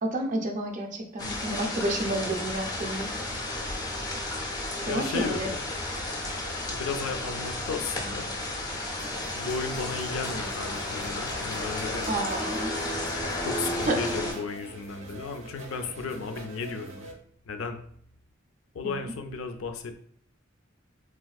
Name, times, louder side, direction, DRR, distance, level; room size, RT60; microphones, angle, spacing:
voice 1, 0.0-3.1 4.9-5.5 12.1-12.7 13.9-14.0 18.8-19.1, right 1 dB, 40° right, 3 dB, 0.4 m, -30 dB
sound 1, 1.2-14.3, left 1 dB, 20° left, 0.4 m, -33 dB
voice 2, 4.9-5.6 6.7-8.3 9.3-12.1 13.4-17.1 17.5-17.8 18.7-19.9, left 4 dB, 85° left, 6 dB, 0.4 m, -34 dB
sound 2, 9.0-17.1, right 1 dB, 85° right, 0.9 m, -44 dB
3.4 x 2.3 x 2.3 m, 0.63 s
head